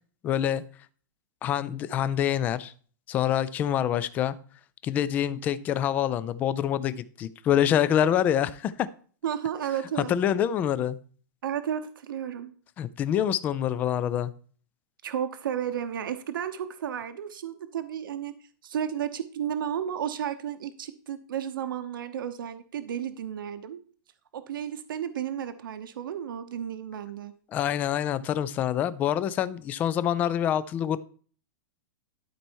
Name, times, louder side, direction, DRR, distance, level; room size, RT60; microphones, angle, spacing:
voice 1, 0.2-0.6 1.4-2.7 3.1-4.3 4.8-8.9 10.1-11.0 12.8-14.3 27.5-31.0, left 10 dB, 15° left, 16 dB, 0.3 m, -26 dB
voice 2, 9.2-10.2 11.4-12.5 15.0-18.3 18.6-23.8 24.3-27.3, right 9 dB, 80° right, 9 dB, 0.9 m, -33 dB
12.0 x 4.2 x 4.6 m, 0.43 s
supercardioid pair, 165°, 11 cm